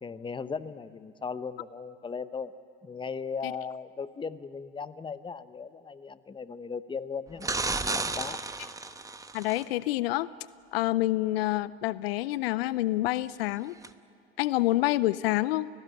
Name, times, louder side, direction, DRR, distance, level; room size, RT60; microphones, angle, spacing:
voice 1, 0.0-2.5 2.8-7.5 7.8-8.4, left 5 dB, 15° left, 14 dB, 0.9 m, -37 dB
sound 1, 7.4-9.6 13.8-13.9, right 3 dB, 10° right, 1.1 m, -32 dB
voice 2, 9.3-10.3 10.7-13.8 14.4-15.7, left 16 dB, 70° left, 19 dB, 0.6 m, -27 dB
29.0 x 18.5 x 9.3 m, 2.6 s
hypercardioid pair, 80°, 31 cm